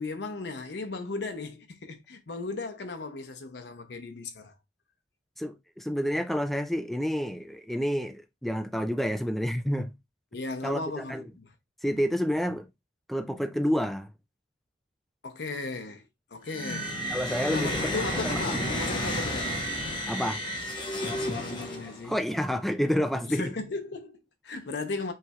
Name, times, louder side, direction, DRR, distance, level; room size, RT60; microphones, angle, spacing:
voice 1, 0.0-4.5 10.3-11.5 15.2-17.0 17.5-19.6 21.0-22.2 23.2-25.1, left 3 dB, 75° left, 0.7 m, -36 dB
voice 2, 5.4-9.9 10.6-11.2 11.8-12.7 13.1-14.1 17.1-18.0 18.2-18.6 20.1-20.4 22.0-23.5, equal, ahead, 0.3 m, -29 dB
sound 1, 16.5-22.1, equal, 25° left, 0.9 m, -32 dB
5.5 x 3.2 x 2.3 m
head